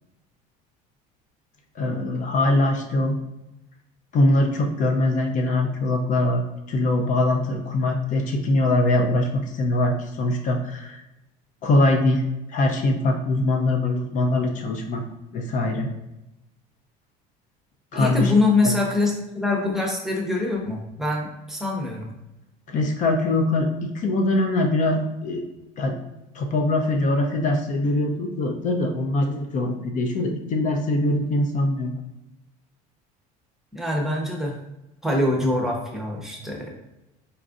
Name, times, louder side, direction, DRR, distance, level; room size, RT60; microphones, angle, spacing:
voice 1, 1.8-3.2 4.1-6.4 6.7-11.0 11.6-12.2 12.5-15.0 15.3-15.9 17.9-18.3 18.6-18.7 22.7-25.5 25.8-26.0 26.3-31.9, left 2 dB, 40° left, 3 dB, 0.6 m, -22 dB
voice 2, 17.9-22.1 33.7-34.5 35.0-36.7, left 2 dB, ahead, -1 dB, 0.7 m, -24 dB
4.1 x 2.4 x 2.5 m, 0.93 s
supercardioid pair, 110°, 19 cm